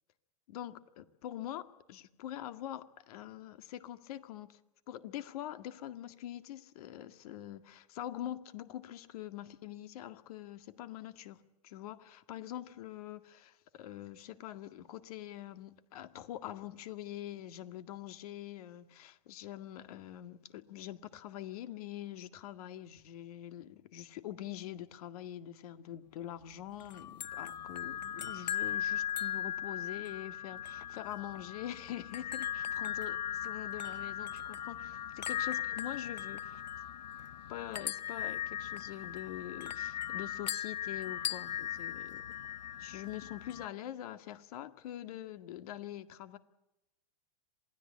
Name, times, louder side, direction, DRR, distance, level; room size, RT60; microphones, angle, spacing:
voice 1, 0.5-4.6 4.9-36.6 37.5-42.2 42.8-46.4, left 12 dB, 60° left, 10 dB, 2.0 m, -44 dB
sound 1, 26.8-43.7, left 10 dB, 90° left, 1.0 m, -38 dB
27.0 x 18.5 x 8.5 m, 0.96 s
hypercardioid pair, 125°, 21 cm